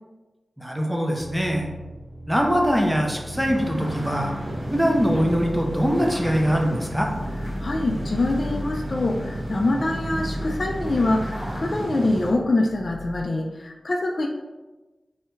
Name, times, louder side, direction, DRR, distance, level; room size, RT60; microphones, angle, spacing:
voice 1, 0.6-1.7 2.3-4.3 4.7-7.1, equal, 5° right, 1 dB, 0.5 m, -22 dB
sound 1, 1.1-13.2, equal, 90° right, 0.8 m, -37 dB
sound 2, 3.3-12.3, right 1 dB, 40° right, 1.3 m, -32 dB
voice 2, 7.6-14.3, left 2 dB, 50° left, 2 dB, 0.3 m, -24 dB
3.1 x 2.4 x 3.1 m, 1.2 s
wide cardioid pair, 75°, 0 cm